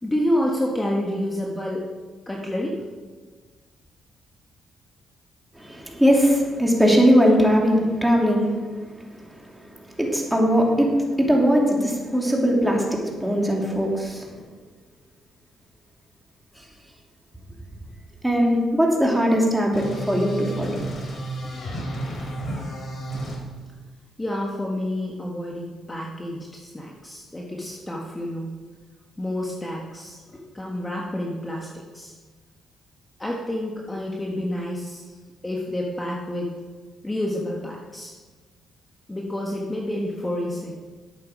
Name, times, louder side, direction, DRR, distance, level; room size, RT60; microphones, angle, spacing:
voice 1, 0.0-1.9 2.3-2.9 18.7-18.8 24.2-28.5 29.2-32.1 33.2-35.1 35.4-36.5 37.0-38.1 39.1-40.8, left 1 dB, 15° left, -2 dB, 1.5 m, -29 dB
voice 2, 5.6-8.5 10.0-14.3 18.2-20.8, equal, 5° right, -1 dB, 2.8 m, -20 dB
sound 1, 19.7-23.4, right 1 dB, 55° left, 3.6 m, -32 dB
11.5 x 8.6 x 5.0 m, 1.4 s
cardioid pair, 90°, 0 cm